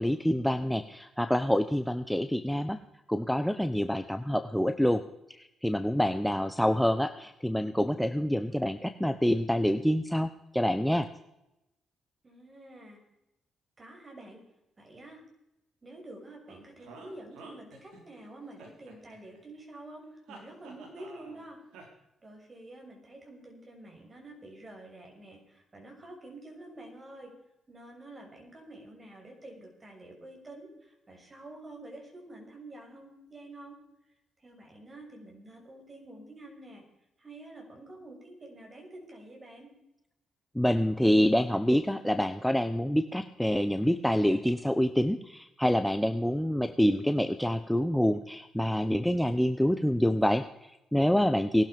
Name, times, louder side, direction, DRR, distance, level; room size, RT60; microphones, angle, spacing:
voice 1, 0.0-2.8 3.1-5.0 5.3-11.1 40.5-51.6, equal, 5° left, 9 dB, 1.0 m, -27 dB
voice 2, 8.4-8.7 12.2-13.0 13.8-14.4 14.8-15.2 15.8-21.6 22.2-27.3 27.7-33.8 34.4-36.8 37.2-39.7, right 1 dB, 30° right, 1 dB, 6.5 m, -48 dB
VG Voice - Hero, 16.5-18.2 18.6-19.6 20.3-21.4 21.7-21.9, right 3 dB, 85° right, 3.9 m, -50 dB
19.0 x 12.0 x 5.3 m, 0.89 s
supercardioid pair, 65°, 0 cm